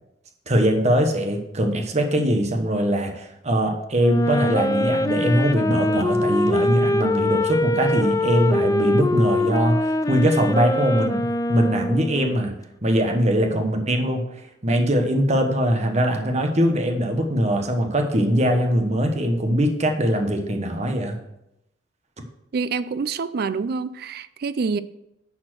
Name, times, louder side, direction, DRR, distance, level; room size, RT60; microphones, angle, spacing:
voice 1, 0.5-12.5 12.8-14.3 14.6-21.2, equal, 35° right, 1.2 m, -21 dB
Wind instrument woodwind instrument, 4.0-12.4, left 2 dB, 20° left, 0.4 m, -23 dB
voice 2, 22.5-24.8, right 5 dB, 55° right, 0.4 m, -26 dB
10.5 x 4.3 x 6.3 m
head